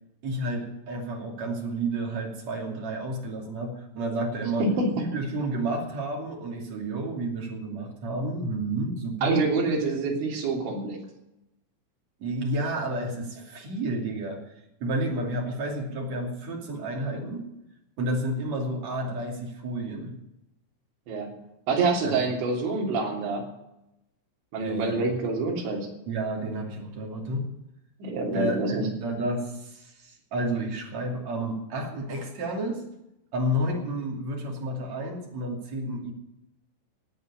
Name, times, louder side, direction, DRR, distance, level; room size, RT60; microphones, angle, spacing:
voice 1, 0.2-4.6 4.9-9.4 12.2-14.4 14.8-17.4 18.0-20.1 22.0-22.3 24.6-25.0 26.1-27.5 28.3-32.8 33.3-36.1, right 1 dB, 40° right, 0 dB, 3.4 m, -31 dB
voice 2, 4.6-4.9 9.2-11.0 21.1-21.3 21.7-23.5 24.5-25.9 28.0-28.9, right 3 dB, 70° right, -1 dB, 5.3 m, -26 dB
15.0 x 8.9 x 8.7 m, 0.88 s
omnidirectional pair, 5.6 m